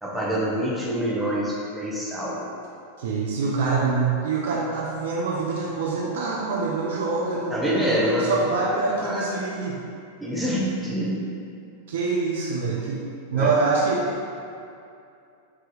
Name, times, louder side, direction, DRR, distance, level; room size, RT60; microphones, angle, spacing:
voice 1, 0.0-2.4 7.5-8.4 9.0-9.2 10.2-11.2 13.3-13.5, equal, ahead, -6 dB, 0.9 m, -26 dB
voice 2, 3.0-9.8 11.9-13.0 13.3-14.3, right 4 dB, 60° right, -3 dB, 0.5 m, -25 dB
4.7 x 2.9 x 3.7 m, 2.5 s
figure-of-eight pair, 90°, 0 cm